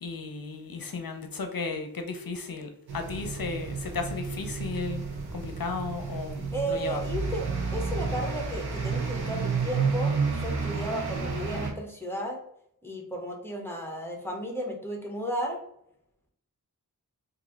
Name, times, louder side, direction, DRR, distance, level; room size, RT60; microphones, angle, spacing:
voice 1, 0.0-5.0 5.3-7.0, left 4 dB, 65° left, 5 dB, 0.6 m, -35 dB
sound 1, 2.9-11.7, right 5 dB, 90° right, 0.8 m, -31 dB
voice 2, 6.5-12.4 12.8-15.6, right 1 dB, 5° left, 0 dB, 1.0 m, -34 dB
3.1 x 2.7 x 3.9 m, 0.71 s
wide cardioid pair, 55°, 37 cm